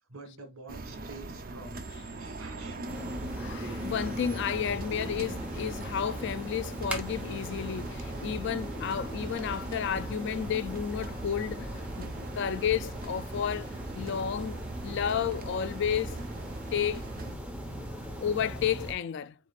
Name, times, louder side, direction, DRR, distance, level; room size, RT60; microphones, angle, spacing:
voice 1, 0.1-3.1, right 3 dB, 80° right, 1.5 m, -48 dB
sound 1, 0.7-17.4, right 2 dB, 45° right, 0.7 m, -41 dB
sound 2, 2.9-18.9, right 1 dB, 5° right, 1.0 m, -39 dB
voice 2, 3.3-13.7 13.9-16.2 16.7-17.4 18.2-19.4, left 8 dB, 55° left, 0.3 m, -32 dB
4.9 x 4.0 x 2.4 m
head